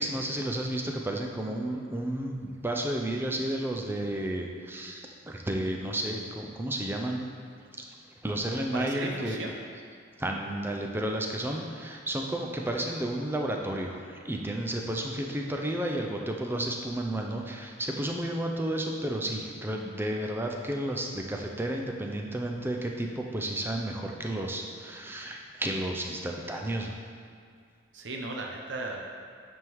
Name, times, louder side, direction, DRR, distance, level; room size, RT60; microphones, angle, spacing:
voice 1, 0.0-7.3 7.8-7.9 8.2-9.5 10.2-27.0, right 1 dB, 10° right, 1 dB, 0.5 m, -32 dB
voice 2, 8.5-9.5 27.9-29.1, right 2 dB, 60° right, 0 dB, 0.7 m, -36 dB
9.2 x 3.6 x 4.6 m, 2.2 s
head